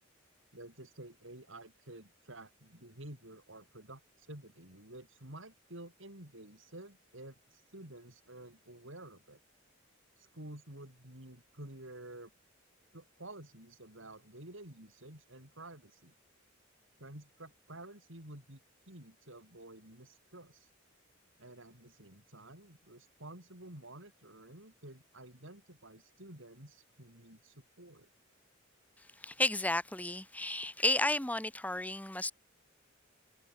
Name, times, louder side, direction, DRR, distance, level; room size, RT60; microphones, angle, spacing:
voice 1, 0.5-9.4 10.2-12.3 12.9-16.1 17.0-18.6 18.9-20.7 21.4-28.1, right 1 dB, 65° right, 7.3 m, -51 dB
voice 2, 29.0-32.3, left 2 dB, 10° left, 1.4 m, -32 dB
head